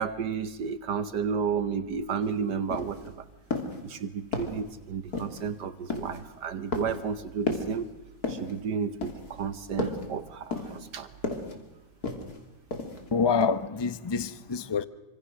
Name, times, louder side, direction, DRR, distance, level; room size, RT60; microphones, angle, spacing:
voice 1, 0.0-3.3 3.8-7.9 8.3-11.1, right 6 dB, 70° right, 1.6 m, -32 dB
sound 1, 2.2-2.3 2.7-3.1 3.5-3.8 4.3-4.7 5.1-5.5 5.9-6.2 6.7-7.1 7.5-7.8 8.2-8.6 9.0-9.4 9.8-10.1 10.5-10.9 11.2-11.5 12.0-12.4 12.7-13.1 13.4-13.5, left 3 dB, 55° left, 3.3 m, -33 dB
voice 2, 13.1-14.8, left 5 dB, 30° left, 0.5 m, -26 dB
26.0 x 25.5 x 6.5 m
omnidirectional pair, 1.9 m